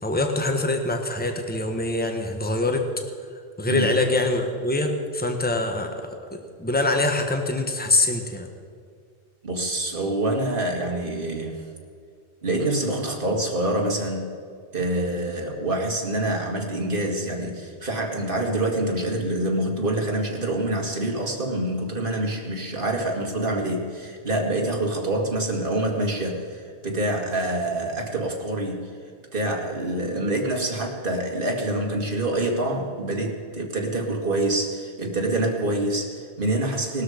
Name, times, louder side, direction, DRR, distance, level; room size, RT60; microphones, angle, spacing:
voice 1, 0.0-2.9 3.6-8.5, left 2 dB, 10° left, 4 dB, 1.3 m, -24 dB
voice 2, 9.4-11.6 12.4-14.3 14.7-28.9 29.3-37.0, right 1 dB, 50° right, 1 dB, 2.3 m, -26 dB
19.5 x 12.5 x 5.1 m, 2.2 s
omnidirectional pair, 1.1 m